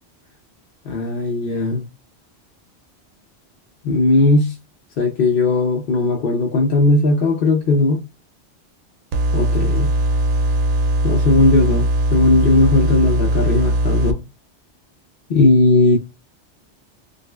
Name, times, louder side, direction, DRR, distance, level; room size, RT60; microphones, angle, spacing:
voice 1, 0.9-1.8 3.8-4.6 5.0-8.0 9.3-9.9 11.0-14.2 15.3-16.0, left 2 dB, 55° left, 0.9 m, -17 dB
sound 1, 9.1-14.1, right 1 dB, 85° right, 0.9 m, -19 dB
5.1 x 2.0 x 2.3 m
omnidirectional pair, 1.2 m